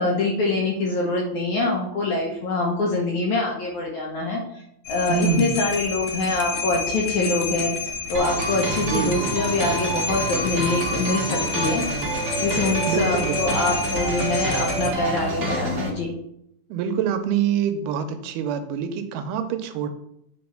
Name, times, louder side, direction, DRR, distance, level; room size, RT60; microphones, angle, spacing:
voice 1, 0.0-4.6 4.9-7.7 8.1-11.9 12.4-16.1, left 2 dB, 65° left, -2 dB, 1.9 m, -24 dB
sound 1, 4.9-14.9, left 5 dB, 90° left, 1.6 m, -30 dB
voice 2, 5.1-5.6 8.8-9.4 12.9-13.6 16.7-19.9, right 7 dB, 80° right, 8 dB, 2.6 m, -25 dB
sound 2, 8.1-15.9, right 3 dB, 65° right, 1.0 m, -28 dB
8.6 x 3.9 x 5.7 m, 0.77 s
omnidirectional pair, 4.6 m